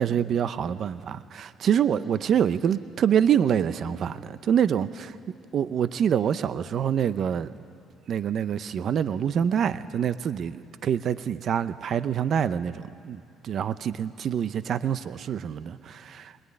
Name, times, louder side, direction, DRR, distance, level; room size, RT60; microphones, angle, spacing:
voice 1, 0.0-5.1 5.5-7.5 8.1-16.4, right 8 dB, 55° right, 13 dB, 0.7 m, -26 dB
22.0 x 21.5 x 9.8 m, 2.7 s
cardioid pair, 105°, 0 cm